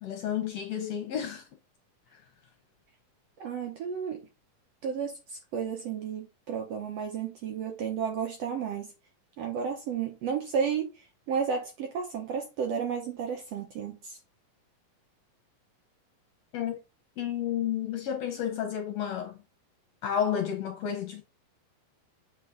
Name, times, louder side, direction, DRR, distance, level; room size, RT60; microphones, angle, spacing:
voice 1, 0.0-1.5 16.5-16.8 17.2-19.4 20.0-21.2, left 9 dB, 65° left, 1.7 m, -31 dB
voice 2, 3.4-4.2 4.8-8.9 9.4-10.8 11.3-14.2, right 7 dB, 65° right, 1.6 m, -32 dB
7.5 x 4.0 x 3.8 m
omnidirectional pair, 3.9 m